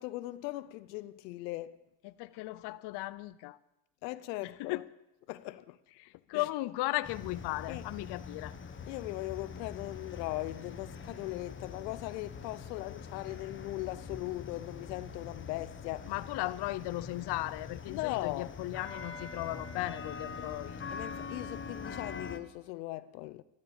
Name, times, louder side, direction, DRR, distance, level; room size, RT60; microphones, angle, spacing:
voice 1, 0.0-1.8 4.0-4.8 5.3-5.8 6.3-6.4 7.7-7.8 8.9-16.1 17.9-18.5 20.9-23.4, left 18 dB, 80° left, 0.8 m, -39 dB
voice 2, 2.0-3.6 4.4-4.8 6.0-8.5 16.1-20.8, left 18 dB, 55° left, 0.8 m, -36 dB
sound 1, 7.0-22.4, left 5 dB, 25° left, 1.5 m, -44 dB
14.0 x 12.5 x 7.2 m
supercardioid pair, 90°, 49 cm